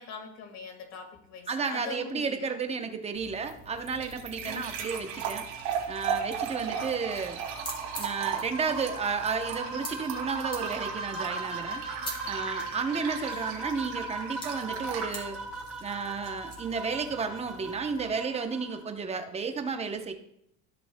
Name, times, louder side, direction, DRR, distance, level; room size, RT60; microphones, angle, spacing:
voice 1, 0.0-2.6 4.4-4.7, left 5 dB, 50° left, 5 dB, 1.8 m, -42 dB
voice 2, 1.5-5.5 5.9-7.4 8.0-11.8 12.2-15.4 15.8-20.1, right 5 dB, 20° right, 6 dB, 0.7 m, -32 dB
sound 1, 3.2-18.1, right 7 dB, 90° right, 2.3 m, -37 dB
sound 2, 6.6-7.1 7.3-7.4 7.6-9.9 10.5-10.6 11.6-12.1 12.6-13.7 14.4-14.5 15.1-15.2 16.2-16.6, equal, 15° left, 2.7 m, -40 dB
sound 3, 7.8-18.8, right 2 dB, ahead, 2.9 m, -39 dB
14.0 x 6.8 x 2.2 m, 0.75 s
cardioid pair, 150°, 34 cm